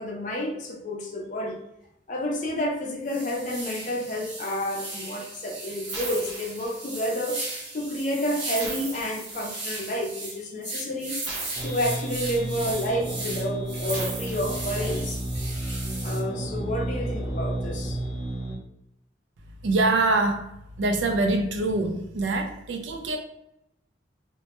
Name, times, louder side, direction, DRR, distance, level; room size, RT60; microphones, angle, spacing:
voice 1, 0.0-1.6 2.1-11.1 11.6-15.2 16.0-18.0, left 1 dB, 45° left, 0 dB, 0.5 m, -30 dB
sound 1, 1.8-1.9 2.5-2.6 3.0-16.2, right 2 dB, 45° right, 0.9 m, -37 dB
sound 2, 5.9-7.2 8.5-9.9 11.2-12.6 13.9-15.2, right 3 dB, 70° right, 0.8 m, -37 dB
sound 3, 11.5-18.6, right 1 dB, 20° right, 0.7 m, -31 dB
voice 2, 19.6-20.5 20.8-23.2, right 2 dB, 85° right, 5 dB, 0.4 m, -24 dB
2.1 x 2.1 x 2.8 m, 0.83 s
head